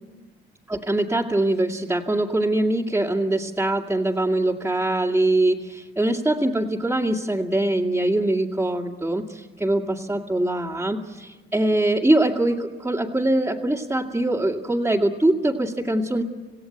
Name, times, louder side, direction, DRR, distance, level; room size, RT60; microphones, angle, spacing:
voice 1, 0.7-16.2, right 1 dB, 10° right, -5 dB, 2.4 m, -23 dB
28.0 x 17.0 x 9.2 m, 1.3 s
cardioid pair, 90°, 20 cm